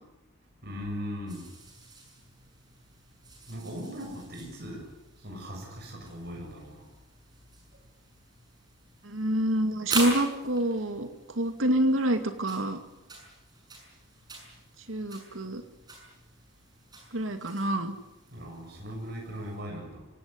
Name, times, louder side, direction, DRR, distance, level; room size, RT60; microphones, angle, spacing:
voice 1, 0.6-1.5 3.5-4.9 5.2-6.8 18.3-20.0, equal, 50° right, 0 dB, 7.8 m, -39 dB
sound 1, 1.3-19.6, right 2 dB, 20° right, 6.9 m, -43 dB
voice 2, 9.0-11.1 11.4-12.8 14.9-15.6 17.1-17.9, right 1 dB, 80° right, 7 dB, 2.4 m, -27 dB
25.5 x 17.5 x 9.6 m, 0.98 s
head